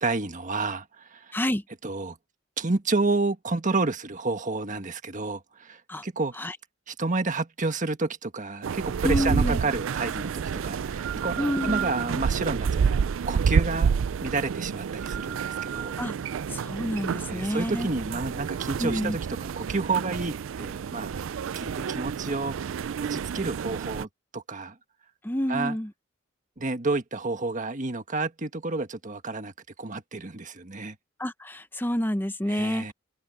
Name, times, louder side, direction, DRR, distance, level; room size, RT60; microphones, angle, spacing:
voice 1, 0.0-1.4 1.8-2.2 2.6-6.5 6.9-12.8 13.3-13.9 14.2-15.9 17.3-22.6 23.0-24.8 25.5-25.8 26.6-29.5 29.8-30.9 32.5-32.9, right 3 dB, 40° right, 1.5 m, -30 dB
sound 1, 8.6-24.1, right 6 dB, 75° right, 0.4 m, -29 dB
voice 2, 9.0-9.6 11.4-11.9 16.0-16.1 16.5-17.9 18.8-19.2 25.2-25.9 31.2-32.9, equal, 10° left, 0.9 m, -28 dB
head